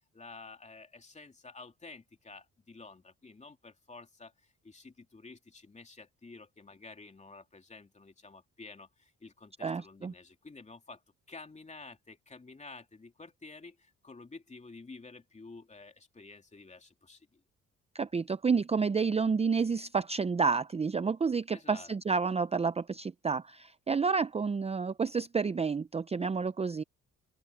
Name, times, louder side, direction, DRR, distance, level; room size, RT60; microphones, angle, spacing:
voice 1, 0.1-11.0 11.3-17.4 21.5-21.9, left 3 dB, 25° left, 2.9 m, -51 dB
voice 2, 9.6-10.1 17.9-26.8, right 5 dB, 20° right, 0.5 m, -30 dB
open air
cardioid pair, 90°, 30 cm